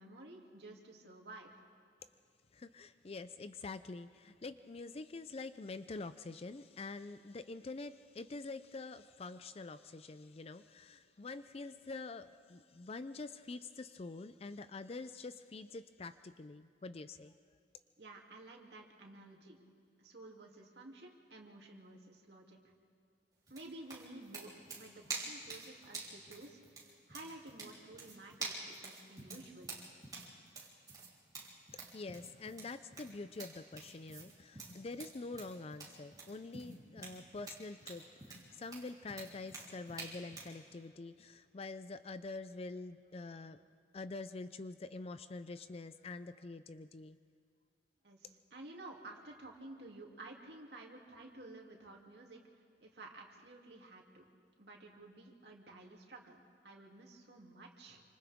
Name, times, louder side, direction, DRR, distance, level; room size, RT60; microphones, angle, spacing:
voice 1, 0.0-1.6 18.0-19.6 20.0-22.6 23.5-29.8 48.0-52.4 52.8-54.2 54.6-58.0, right 2 dB, 70° right, 0 dB, 2.8 m, -53 dB
voice 2, 2.5-17.3 31.7-43.6 43.9-47.2, left 3 dB, 35° left, 12 dB, 0.4 m, -46 dB
sound 1, 23.5-40.6, right 3 dB, 20° right, 3.8 m, -48 dB
28.5 x 26.0 x 3.6 m, 2.3 s
head